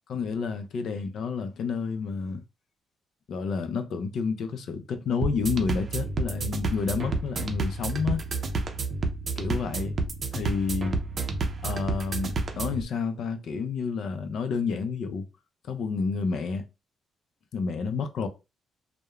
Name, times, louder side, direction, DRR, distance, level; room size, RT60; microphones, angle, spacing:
voice 1, 0.1-2.4 3.3-8.2 9.4-9.9 10.3-11.0 11.6-15.2 15.7-16.7 17.5-18.3, left 5 dB, 65° left, 0.4 m, -30 dB
sound 1, 5.2-12.8, right 3 dB, 45° right, 0.5 m, -30 dB
3.0 x 2.0 x 2.3 m
cardioid pair, 90°, 0 cm